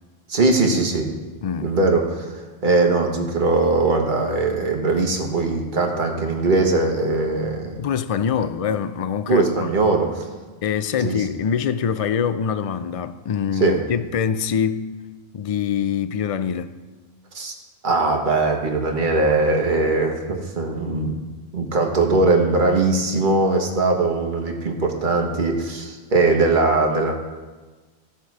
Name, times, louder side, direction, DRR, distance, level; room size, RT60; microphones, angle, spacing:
voice 1, 0.3-1.1 1.6-2.3 2.6-7.8 9.3-10.3 11.0-11.2 13.6-13.8 17.3-17.5 17.8-21.1 21.5-27.1, right 3 dB, 45° right, 1.4 m, -20 dB
voice 2, 1.4-1.7 7.8-9.7 10.0-10.1 10.6-14.9 15.3-16.8, left 7 dB, 60° left, 0.3 m, -24 dB
16.5 x 6.0 x 4.8 m
omnidirectional pair, 1.1 m